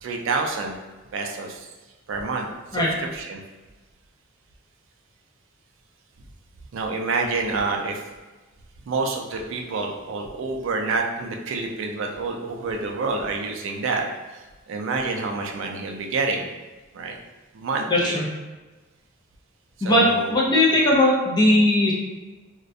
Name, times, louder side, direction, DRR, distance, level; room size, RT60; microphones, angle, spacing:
voice 1, 0.0-0.8 1.1-1.7 2.1-3.4 6.7-8.0 8.9-14.1 14.3-16.4 16.9-17.1 17.5-18.2 19.8-20.6, right 3 dB, 65° right, 2 dB, 0.3 m, -28 dB
voice 2, 17.9-18.3 19.8-21.9, left 1 dB, 20° left, -4 dB, 0.5 m, -19 dB
2.3 x 2.1 x 2.6 m, 1.2 s
head